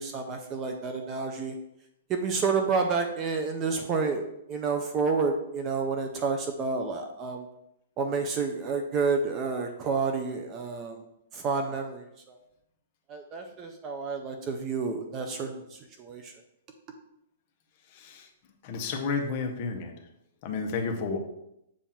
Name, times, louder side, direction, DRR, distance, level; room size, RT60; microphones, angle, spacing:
voice 1, 0.0-1.5 2.1-7.5 8.0-11.0 11.3-12.4 13.1-16.3, right 4 dB, 20° right, 4 dB, 0.4 m, -30 dB
voice 2, 17.9-18.3 18.6-19.9 20.4-21.2, left 4 dB, 30° left, 3 dB, 0.7 m, -31 dB
7.1 x 2.4 x 5.6 m, 0.81 s
hypercardioid pair, 175°, 0 cm